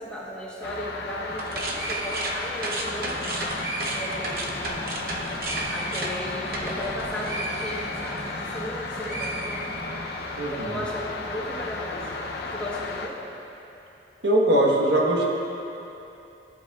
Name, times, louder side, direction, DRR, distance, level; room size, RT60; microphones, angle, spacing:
voice 1, 0.0-3.5 3.8-4.6 5.7-9.7 10.3-12.2 12.5-13.2, equal, 5° left, -6 dB, 1.1 m, -35 dB
sound 1, 0.6-13.1, left 3 dB, 60° left, 0.6 m, -34 dB
sound 2, 1.3-8.7 9.0-10.2, right 2 dB, 55° right, 0.7 m, -33 dB
sound 3, 3.0-10.0, equal, 20° right, 1.4 m, -41 dB
voice 2, 10.4-10.8 14.2-15.2, right 1 dB, 80° right, -2 dB, 1.2 m, -21 dB
13.5 x 7.5 x 2.4 m, 2.9 s
head